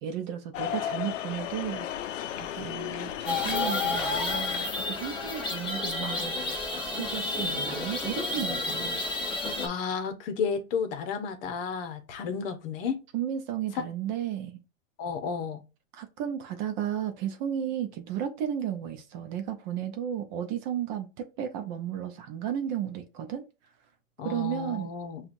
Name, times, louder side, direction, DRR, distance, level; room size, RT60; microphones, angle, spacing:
voice 1, 0.0-1.9 2.3-9.0 13.1-14.6 15.9-23.4 24.2-24.9, right 9 dB, 35° right, 0.6 m, -34 dB
sound 1, 0.5-6.9, left 10 dB, 70° left, 0.6 m, -37 dB
sound 2, 3.3-9.7, left 3 dB, 15° left, 0.9 m, -31 dB
voice 2, 9.6-13.0 15.0-15.6 24.2-25.2, left 6 dB, 45° left, 0.9 m, -32 dB
5.6 x 2.4 x 2.5 m
hypercardioid pair, 135°, 38 cm